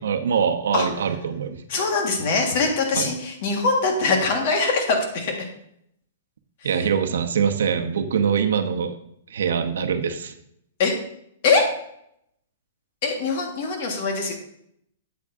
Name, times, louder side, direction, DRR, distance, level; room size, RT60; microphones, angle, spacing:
voice 1, 0.0-1.6 2.9-3.1 6.6-9.0 9.3-10.3, right 7 dB, 85° right, 6 dB, 0.9 m, -23 dB
voice 2, 1.7-5.4 10.8-11.0 11.4-11.6 13.0-14.3, left 4 dB, 45° left, 3 dB, 1.7 m, -22 dB
8.3 x 8.0 x 2.7 m, 0.73 s
hypercardioid pair, 160°, 0 cm